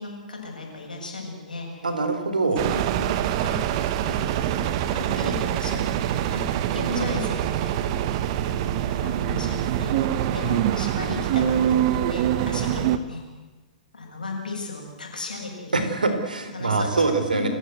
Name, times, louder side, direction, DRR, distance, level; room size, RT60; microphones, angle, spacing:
voice 1, 0.0-1.7 2.6-3.1 3.4-4.2 4.4-6.4 6.7-7.9 8.5-10.0 10.3-13.2 13.9-15.6 16.5-17.0 17.3-17.5, left 3 dB, 85° left, 0 dB, 7.6 m, -35 dB
voice 2, 1.8-2.6 6.9-7.1 15.7-17.5, right 3 dB, 85° right, 8 dB, 3.9 m, -24 dB
sound 1, 2.6-13.0, right 11 dB, 45° right, 1.5 m, -24 dB
29.5 x 15.0 x 8.0 m, 1.2 s
hypercardioid pair, 115°, 4 cm